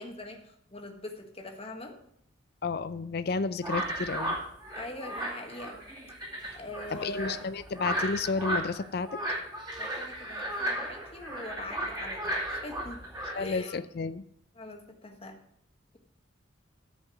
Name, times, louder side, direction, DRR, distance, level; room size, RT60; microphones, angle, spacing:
voice 1, 0.0-2.0 4.7-5.8 6.5-7.5 9.8-13.1 13.3-13.8 14.5-15.4, left 1 dB, 30° left, 3 dB, 1.5 m, -42 dB
voice 2, 2.6-4.4 6.9-9.2 13.3-14.2, left 4 dB, 50° left, 13 dB, 0.5 m, -31 dB
sound 1, 3.6-13.3, right 1 dB, 20° right, 2.6 m, -34 dB
13.5 x 5.3 x 6.1 m, 0.71 s
head